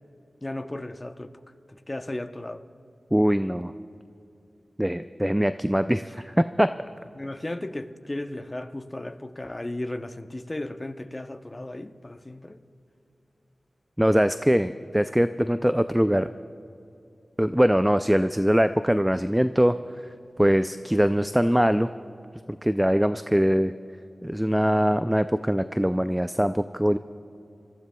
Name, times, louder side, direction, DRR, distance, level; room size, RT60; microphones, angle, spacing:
voice 1, 0.4-1.3 1.7-2.6 7.1-12.6, left 1 dB, 30° left, 8 dB, 0.8 m, -35 dB
voice 2, 3.1-3.7 4.8-6.7 14.0-16.3 17.4-19.7 20.4-21.9 22.6-23.7 24.2-27.0, equal, 5° right, 11 dB, 0.4 m, -22 dB
27.5 x 15.5 x 2.3 m, 2.7 s
wide cardioid pair, 55°, 0 cm